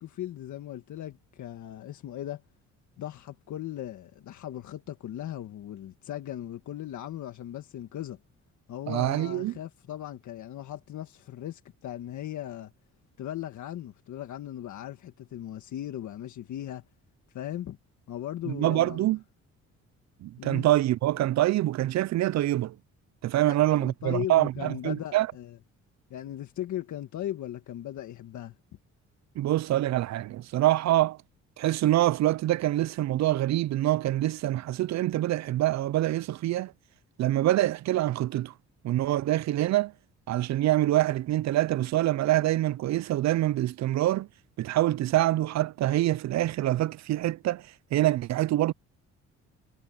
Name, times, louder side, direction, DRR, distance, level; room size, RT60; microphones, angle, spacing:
voice 1, 0.0-2.4 3.0-8.2 8.7-12.7 13.2-16.8 17.3-17.8 18.1-19.1 20.4-20.7 23.5-25.6 26.1-28.5, left 12 dB, 70° left, 1.7 m, -38 dB
voice 2, 8.9-9.5 18.5-19.2 20.2-22.8 23.2-25.3 29.4-31.2 31.6-36.7 37.2-38.5 38.8-39.9 40.3-44.3 44.6-48.7, right 15 dB, 65° right, 0.5 m, -25 dB
cardioid pair, 90°, 30 cm